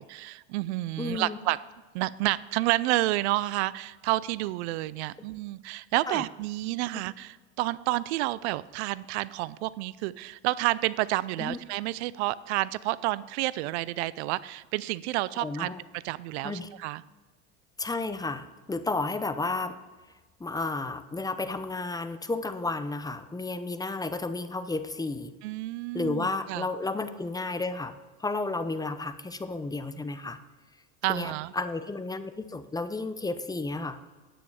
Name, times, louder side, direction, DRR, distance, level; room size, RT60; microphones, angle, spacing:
voice 1, 0.1-1.6 1.9-17.0 25.4-26.7 31.0-31.5, right 18 dB, 75° right, 19 dB, 0.5 m, -30 dB
voice 2, 1.0-1.4 6.1-6.2 11.4-11.6 15.4-15.8 16.4-16.7 17.8-19.8 20.4-25.3 25.9-27.9 28.2-30.4 31.1-34.0, left 3 dB, 10° left, 10 dB, 0.7 m, -32 dB
10.0 x 8.9 x 4.8 m, 1.3 s
hypercardioid pair, 95°, 34 cm